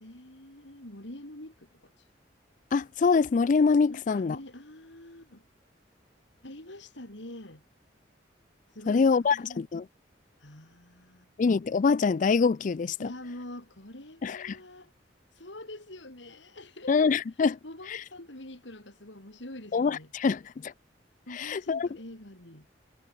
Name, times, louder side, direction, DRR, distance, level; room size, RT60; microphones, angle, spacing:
voice 1, 0.0-1.9 3.9-5.4 6.4-7.6 8.7-9.6 10.4-11.3 13.0-14.9 15.4-17.0 17.6-20.1 21.3-22.7, left 1 dB, 85° left, 5.0 m, -45 dB
voice 2, 2.7-4.4 8.9-9.9 11.4-13.1 14.2-14.6 16.9-17.6 17.9-18.0 19.7-20.7 21.3-21.9, left 5 dB, 45° left, 0.4 m, -25 dB
head